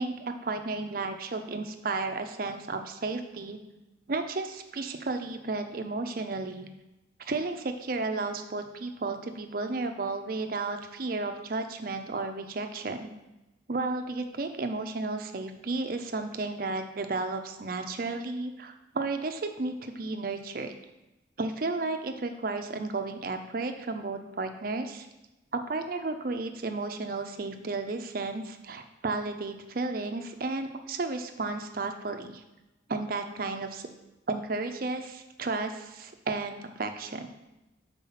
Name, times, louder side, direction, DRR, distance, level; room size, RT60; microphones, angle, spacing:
voice 1, 0.0-3.6 4.1-6.7 7.3-13.1 13.7-20.8 21.4-25.1 25.5-32.4 32.9-33.9 34.3-37.3, right 3 dB, 50° right, 6 dB, 0.6 m, -33 dB
5.6 x 4.1 x 5.6 m, 1.0 s
head